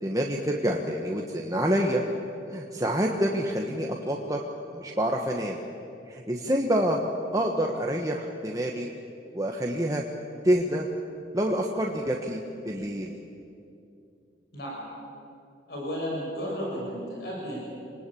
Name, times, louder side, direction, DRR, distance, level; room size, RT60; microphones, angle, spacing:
voice 1, 0.0-2.0 2.5-4.4 4.7-5.6 6.1-7.0 7.3-8.9 9.3-10.0 10.4-10.9 11.3-13.1, equal, 20° right, 0 dB, 1.4 m, -27 dB
voice 2, 14.5-14.8 15.7-17.6, equal, 60° left, -3 dB, 6.4 m, -33 dB
26.5 x 20.0 x 8.6 m, 2.6 s
head